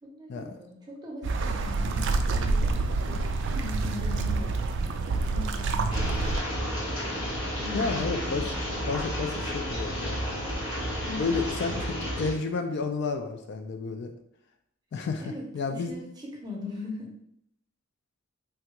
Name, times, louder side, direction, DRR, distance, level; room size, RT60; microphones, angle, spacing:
voice 1, 0.0-6.7 7.6-8.5 11.0-11.3 15.2-17.1, left 2 dB, 20° right, -1 dB, 0.6 m, -41 dB
sound 1, 1.2-6.4, right 3 dB, 60° right, 0.3 m, -27 dB
sound 2, 5.9-12.3, equal, 20° left, 1.1 m, -31 dB
voice 2, 7.7-8.5 8.9-10.2 11.2-14.1 14.9-15.9, left 4 dB, 55° left, 5 dB, 0.3 m, -31 dB
3.4 x 2.3 x 2.9 m, 0.71 s
head